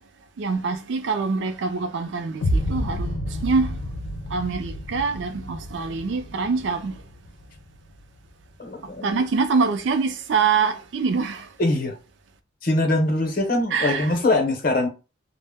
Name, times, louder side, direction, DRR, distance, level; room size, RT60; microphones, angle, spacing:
voice 1, 0.4-3.8 4.3-7.0 9.0-11.5 13.7-14.1, right 5 dB, 65° right, 0.4 m, -25 dB
sound 1, 2.4-8.4, equal, 90° left, 0.5 m, -30 dB
voice 2, 8.6-9.2 11.6-12.0 12.6-14.9, left 2 dB, 45° left, 0.7 m, -22 dB
2.1 x 2.0 x 3.4 m
head